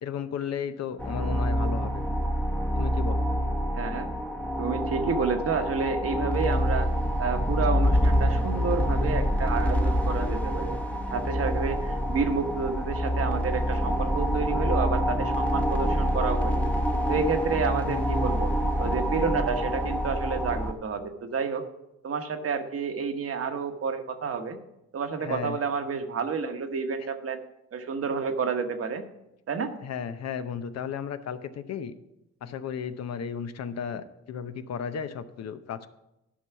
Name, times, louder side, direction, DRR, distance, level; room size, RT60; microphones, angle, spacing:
voice 1, 0.0-2.0 2.8-3.3 17.7-18.1 25.2-25.6 27.0-27.1 29.8-31.9 32.4-35.9, left 7 dB, 60° left, 11 dB, 0.7 m, -34 dB
sound 1, 1.0-20.7, equal, 5° left, 0.9 m, -26 dB
voice 2, 3.7-4.1 4.6-6.9 7.2-10.8 11.1-16.6 17.1-18.5 18.8-21.6 22.0-24.6 24.9-27.4 27.7-29.0 29.5-29.7, right 5 dB, 50° right, 7 dB, 1.1 m, -30 dB
11.5 x 5.5 x 5.7 m, 0.88 s
cardioid pair, 90°, 30 cm